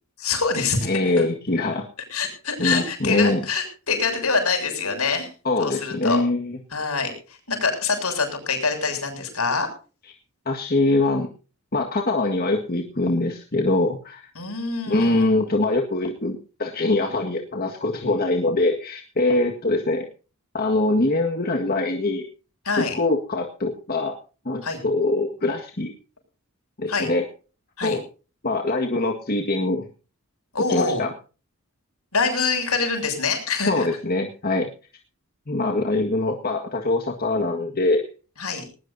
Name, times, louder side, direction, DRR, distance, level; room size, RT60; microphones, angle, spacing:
voice 1, 0.2-0.9 1.2-1.3 2.1-5.3 5.6-6.2 6.7-9.7 14.4-15.3 22.7-23.0 24.6-24.8 26.9-27.1 27.8-28.0 30.5-31.0 32.1-33.9 38.4-38.6, left 4 dB, 75° left, 5 dB, 7.2 m, -25 dB
voice 2, 0.9-1.9 2.6-3.4 5.5-6.6 10.5-11.3 11.7-14.3 14.9-20.1 20.5-22.3 22.8-24.2 24.5-25.9 26.8-27.3 27.8-28.0 28.4-29.9 30.7-31.1 33.7-34.7 35.5-38.1, left 2 dB, 45° left, 3 dB, 1.8 m, -23 dB
19.5 x 19.5 x 2.8 m, 0.37 s
head